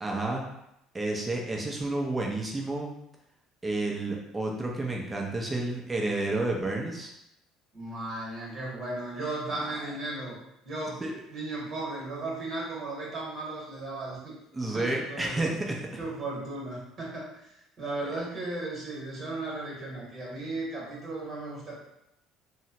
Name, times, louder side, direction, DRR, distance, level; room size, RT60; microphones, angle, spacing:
voice 1, 0.0-0.4 0.9-2.9 3.6-7.1 9.5-9.8 11.0-11.2 14.5-15.8, right 2 dB, 20° right, -1 dB, 0.7 m, -30 dB
voice 2, 7.7-10.4 10.6-11.0 11.3-14.3 14.7-15.6 16.0-21.8, right 2 dB, 45° right, -4 dB, 1.2 m, -36 dB
2.7 x 2.1 x 2.8 m, 0.82 s
hypercardioid pair, 60°, 0 cm